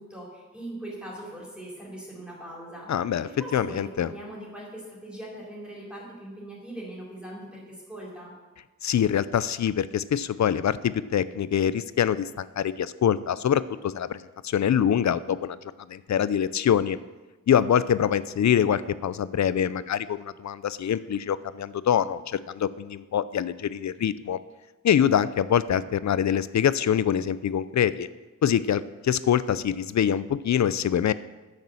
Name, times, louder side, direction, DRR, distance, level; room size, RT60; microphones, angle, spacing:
voice 1, 0.0-2.9 3.2-8.3, right 1 dB, 5° right, -5 dB, 4.0 m, -40 dB
voice 2, 2.9-4.1 8.8-17.0 17.5-24.4 24.8-28.1 28.4-31.1, left 9 dB, 65° left, 16 dB, 0.5 m, -25 dB
10.5 x 6.7 x 7.1 m, 1.2 s
wide cardioid pair, 105°, 30 cm